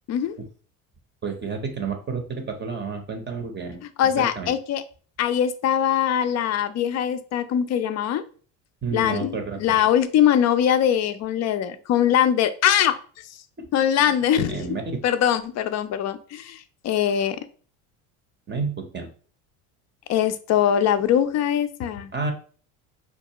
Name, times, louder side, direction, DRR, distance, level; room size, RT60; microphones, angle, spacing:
voice 1, 1.2-3.8 4.2-4.5 8.8-9.8 13.6-13.7 14.0-14.1 14.5-15.0 18.5-19.1 22.1-22.3, right 4 dB, 25° right, 4 dB, 0.7 m, -30 dB
voice 2, 4.0-4.8 5.2-8.2 8.9-13.0 13.7-14.6 15.0-17.4 20.1-22.1, left 9 dB, 40° left, 11 dB, 0.5 m, -22 dB
4.5 x 2.4 x 2.9 m, 0.41 s
supercardioid pair, 90°, 42 cm